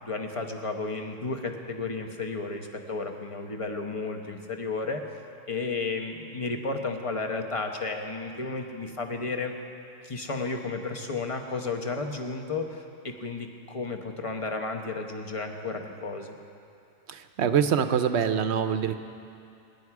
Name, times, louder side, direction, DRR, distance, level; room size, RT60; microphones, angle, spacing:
voice 1, 0.0-5.0 5.5-9.5 10.0-16.3, left 3 dB, 30° left, 4 dB, 1.0 m, -33 dB
voice 2, 17.1-19.0, right 8 dB, 65° right, 9 dB, 0.9 m, -25 dB
23.5 x 10.5 x 4.8 m, 2.5 s
omnidirectional pair, 1.3 m